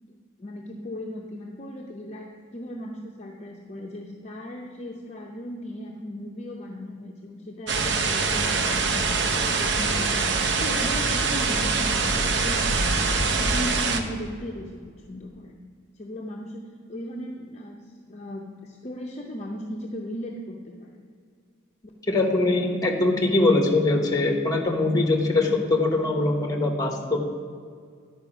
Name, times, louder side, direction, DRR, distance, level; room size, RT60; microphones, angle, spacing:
voice 1, 0.0-15.6 15.9-21.0 21.8-21.9, left 1 dB, 35° left, -1 dB, 0.6 m, -37 dB
sound 1, 7.7-14.0, right 4 dB, 60° right, 0.7 m, -24 dB
voice 2, 22.1-27.2, left 2 dB, 20° left, 2 dB, 1.0 m, -22 dB
10.5 x 4.9 x 6.0 m, 2.1 s
head